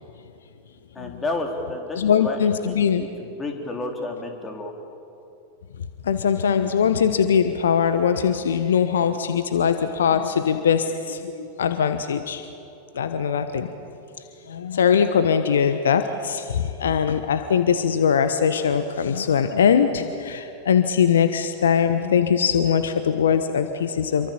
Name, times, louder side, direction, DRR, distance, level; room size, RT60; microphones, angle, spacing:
voice 1, 0.9-4.7, left 2 dB, 15° left, 2 dB, 4.0 m, -31 dB
voice 2, 1.9-3.0 6.0-12.5 12.9-13.7 14.5-24.3, left 7 dB, 65° left, 10 dB, 1.2 m, -21 dB
27.5 x 24.0 x 7.2 m, 2.7 s
figure-of-eight pair, 90°, 0 cm